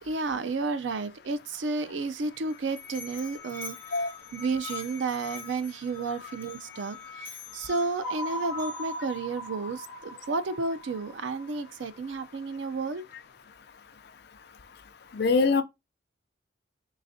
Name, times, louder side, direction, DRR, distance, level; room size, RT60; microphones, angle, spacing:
voice 1, 0.0-13.0, right 3 dB, 80° right, 0.5 m, -32 dB
Musical instrument, 2.2-9.1, left 6 dB, 10° left, 0.9 m, -44 dB
sound 1, 8.0-12.3, equal, 15° right, 1.3 m, -39 dB
voice 2, 15.1-15.6, left 4 dB, 60° left, 0.5 m, -23 dB
3.9 x 3.2 x 2.6 m
head